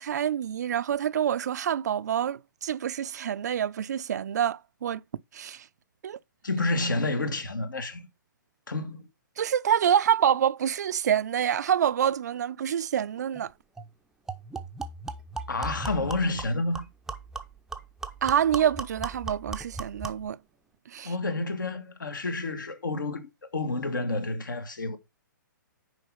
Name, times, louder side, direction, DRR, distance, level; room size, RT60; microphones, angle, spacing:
voice 1, 0.0-5.0 5.3-5.7 6.0-6.2 9.4-13.5 18.2-20.4 20.9-21.1, right 9 dB, 55° right, 0.4 m, -26 dB
voice 2, 6.4-8.1 8.7-9.1 15.5-16.8 21.0-25.0, left 2 dB, 70° left, 1.5 m, -29 dB
sound 1, 13.3-13.4 13.8-13.9 14.3-20.3, right 4 dB, 5° right, 0.5 m, -38 dB
6.4 x 4.8 x 5.4 m
figure-of-eight pair, 125°, 11 cm